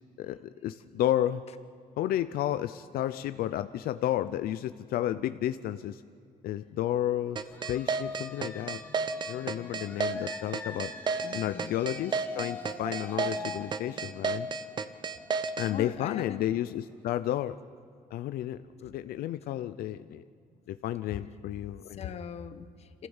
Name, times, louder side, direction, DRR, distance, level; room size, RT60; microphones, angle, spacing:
voice 1, 0.2-1.4 2.0-6.0 6.4-7.4 7.7-8.8 9.3-10.9 11.3-14.5 15.6-17.6 18.1-20.2 20.7-22.1, left 12 dB, 80° left, 12 dB, 0.5 m, -32 dB
Fire Truck (Siren), 7.4-16.9, left 2 dB, 15° left, 2.0 m, -46 dB
sound 1, 7.4-15.7, right 5 dB, 30° right, 0.7 m, -31 dB
voice 2, 11.2-11.7 15.6-16.5 21.1-21.2 22.0-23.1, left 8 dB, 45° left, 11 dB, 1.0 m, -40 dB
26.5 x 15.5 x 7.2 m, 2.3 s
cardioid pair, 170°, 15 cm